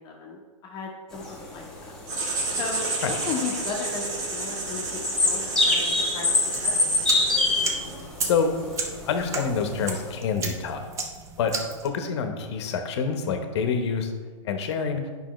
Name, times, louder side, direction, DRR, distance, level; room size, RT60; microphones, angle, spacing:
voice 1, 0.0-1.9 2.6-4.8 5.2-6.3 6.6-6.8, left 4 dB, 25° left, -1 dB, 0.9 m, -35 dB
sound 1, 1.1-10.1, left 2 dB, 5° left, 1.1 m, -26 dB
Writing, 2.1-8.0, right 3 dB, 60° right, 2.2 m, -32 dB
sound 2, 6.5-11.9, right 4 dB, 20° right, 0.6 m, -34 dB
voice 2, 9.1-10.8 11.4-11.5 11.8-14.1 14.4-15.0, left 6 dB, 55° left, 6 dB, 1.0 m, -26 dB
8.8 x 5.5 x 3.1 m, 1.5 s
hypercardioid pair, 145°, 17 cm